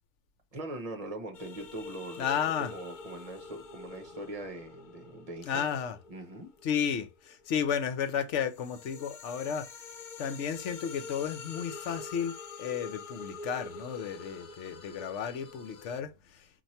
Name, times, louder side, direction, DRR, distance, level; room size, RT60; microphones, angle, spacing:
voice 1, 0.5-2.3 2.6-5.7 6.1-6.5, right 1 dB, 35° right, 0.8 m, -41 dB
sound 1, 1.3-7.7 8.2-16.0, left 4 dB, 45° left, 0.8 m, -46 dB
voice 2, 2.2-2.7 5.4-6.0 6.6-9.7 10.2-16.5, left 8 dB, 70° left, 1.0 m, -33 dB
4.5 x 2.6 x 4.1 m
omnidirectional pair, 1.3 m